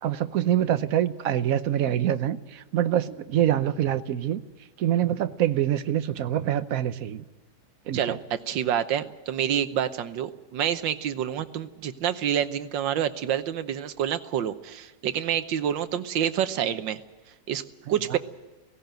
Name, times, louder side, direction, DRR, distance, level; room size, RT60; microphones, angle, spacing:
voice 1, 0.0-4.4 4.8-7.2 7.9-8.2 17.9-18.2, right 11 dB, 60° right, 12 dB, 1.1 m, -25 dB
voice 2, 7.9-17.0 17.5-17.6 17.9-18.2, right 9 dB, 85° right, 11 dB, 1.6 m, -27 dB
17.0 x 17.0 x 9.1 m, 1.2 s
omnidirectional pair, 2.0 m